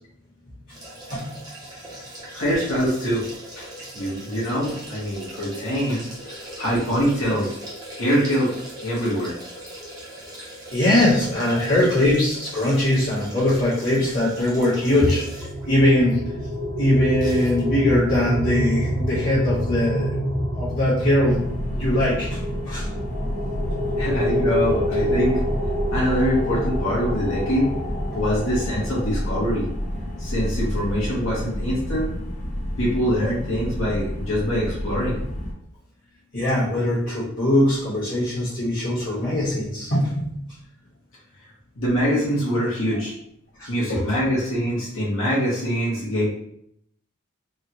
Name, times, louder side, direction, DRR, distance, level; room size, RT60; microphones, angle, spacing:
sound 1, 0.7-15.7 16.1-16.2 17.2-17.6 17.9-18.0, right 1 dB, 20° right, 0.7 m, -40 dB
voice 1, 2.3-3.2 3.6-3.7 3.9-7.5 7.9-8.5 8.8-9.3 11.5-11.6 24.0-25.4 25.9-27.7 28.1-29.6 30.2-32.1 32.8-35.2 41.8-43.1 43.7-46.3, equal, 85° left, -7 dB, 1.1 m, -24 dB
voice 2, 10.7-15.2 15.7-16.2 16.8-20.2 20.5-22.4 22.6-22.9 36.3-40.3 43.6-43.7, left 1 dB, 60° left, -13 dB, 1.4 m, -21 dB
sound 2, 14.9-29.6, equal, 65° right, 0.8 m, -27 dB
sound 3, 21.3-35.5, equal, 35° left, 0.5 m, -29 dB
3.5 x 2.2 x 2.9 m, 0.72 s
head